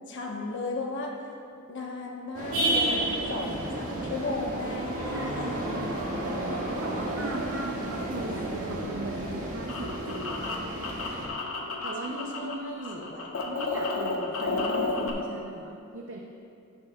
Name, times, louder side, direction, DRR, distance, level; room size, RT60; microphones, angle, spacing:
voice 1, 0.1-1.2 1.7-5.5 7.1-7.5 12.0-13.5, left 2 dB, 55° left, 0 dB, 1.1 m, -36 dB
sound 1, 2.3-11.3, right 1 dB, 90° right, 1.9 m, -31 dB
voice 2, 5.1-5.9 6.8-10.5 11.8-13.2 13.4-16.2, right 2 dB, 60° right, 0 dB, 0.6 m, -39 dB
sound 2, 9.2-12.5 12.8-15.1, left 3 dB, 80° left, 1.1 m, -32 dB
17.0 x 6.6 x 2.3 m, 2.6 s
head